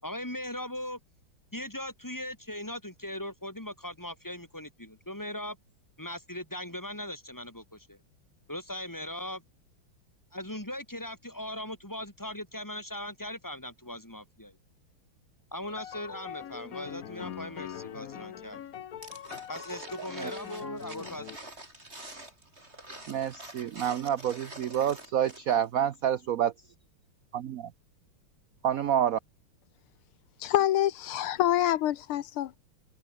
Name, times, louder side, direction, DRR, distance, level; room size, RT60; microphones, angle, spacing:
voice 1, 0.0-1.0 1.5-5.6 6.0-8.0 8.5-9.4 10.3-14.6 15.5-18.6 19.5-21.4, left 1 dB, 10° left, 4.5 m, -39 dB
sound 1, 15.6-21.4, left 10 dB, 55° left, 1.1 m, -42 dB
sound 2, 19.0-25.6 25.9-26.0, right 1 dB, 30° right, 7.2 m, -46 dB
voice 2, 20.0-20.3 23.1-26.5 27.3-27.7 28.6-29.2, right 9 dB, 75° right, 0.8 m, -28 dB
voice 3, 30.4-32.6, left 12 dB, 80° left, 1.8 m, -26 dB
omnidirectional pair, 2.4 m